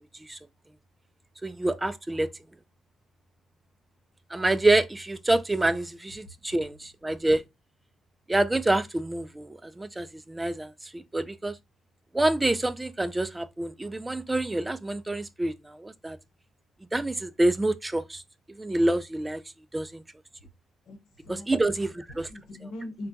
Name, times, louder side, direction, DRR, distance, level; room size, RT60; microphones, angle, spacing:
voice 1, 1.4-2.3 4.3-7.4 8.3-11.6 12.1-16.2 16.9-18.2 18.5-19.4 19.7-20.0 21.3-22.3, right 2 dB, 15° right, 0.3 m, -27 dB
voice 2, 20.9-23.1, left 1 dB, 75° left, 1.0 m, -42 dB
2.2 x 2.2 x 3.9 m
cardioid pair, 90°, 0 cm